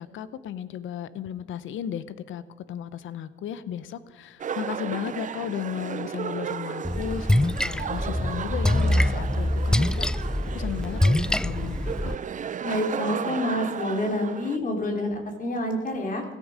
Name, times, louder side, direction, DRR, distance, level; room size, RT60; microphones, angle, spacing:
voice 1, 0.0-12.1, left 9 dB, 75° left, 15 dB, 0.9 m, -35 dB
sound 1, 4.4-14.6, right 8 dB, 40° right, 0.6 m, -35 dB
Splash splatter, 6.8-12.1, left 1 dB, 5° left, 0.3 m, -24 dB
voice 2, 12.6-16.2, left 1 dB, 45° left, 2 dB, 3.4 m, -28 dB
16.5 x 14.0 x 5.0 m, 1.4 s
cardioid pair, 90°, 20 cm